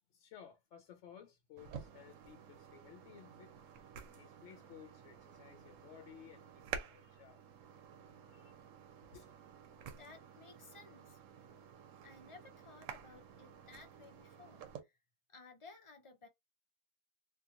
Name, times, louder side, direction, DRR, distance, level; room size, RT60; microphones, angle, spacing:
voice 1, 0.1-3.5 4.1-7.4 8.0-8.5 9.1-9.3, left 9 dB, 70° left, 0.9 m, -57 dB
sound 1, 1.6-14.8, right 7 dB, 75° right, 1.0 m, -51 dB
voice 2, 9.9-11.2 12.0-15.0 15.3-16.3, left 4 dB, 40° left, 0.5 m, -57 dB
2.9 x 2.5 x 2.4 m
omnidirectional pair, 1.3 m